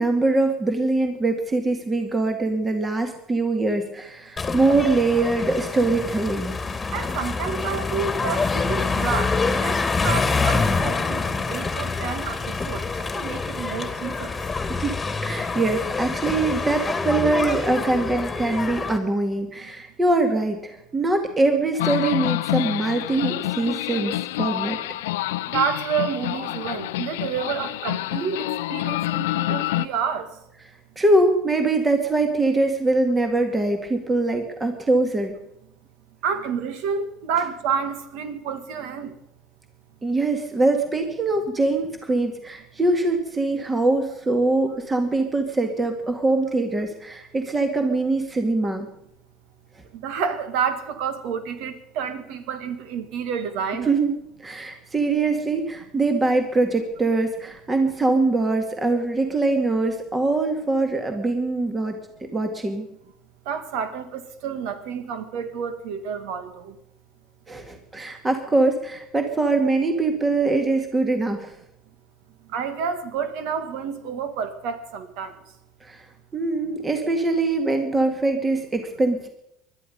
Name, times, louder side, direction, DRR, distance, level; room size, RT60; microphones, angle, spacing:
voice 1, 0.0-6.6 14.3-15.0 15.2-24.8 31.0-35.4 40.0-48.9 53.9-62.0 62.3-62.9 67.5-71.5 75.8-76.1 76.3-79.3, right 2 dB, 20° right, 5 dB, 2.2 m, -23 dB
sound 1, 4.4-19.0, left 4 dB, 20° left, 2.0 m, -26 dB
voice 2, 6.9-9.8 10.0-12.8 13.2-14.3 25.5-30.3 36.2-39.1 50.0-53.9 63.5-66.7 72.5-75.3, right 6 dB, 75° right, 11 dB, 1.9 m, -29 dB
sound 2, 21.8-29.9, left 17 dB, 85° left, 0.5 m, -27 dB
20.5 x 12.5 x 5.4 m, 0.80 s
supercardioid pair, 85°, 0 cm